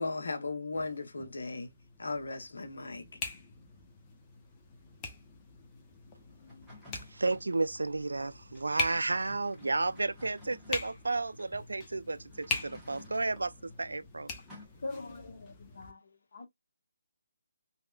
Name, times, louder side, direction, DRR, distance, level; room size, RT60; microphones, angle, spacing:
voice 1, 0.0-1.7 2.0-3.2, left 3 dB, 75° left, 0.9 m, -36 dB
sound 1, 0.7-15.9, left 3 dB, 20° left, 0.8 m, -43 dB
sound 2, 6.5-7.6 8.6-11.3 12.3-13.4 14.5-14.7, left 2 dB, ahead, 1.4 m, -54 dB
voice 2, 6.9-14.3, right 3 dB, 90° right, 0.4 m, -32 dB
voice 3, 14.8-16.5, left 3 dB, 55° left, 1.3 m, -43 dB
3.2 x 2.7 x 2.2 m
figure-of-eight pair, 155°, 0 cm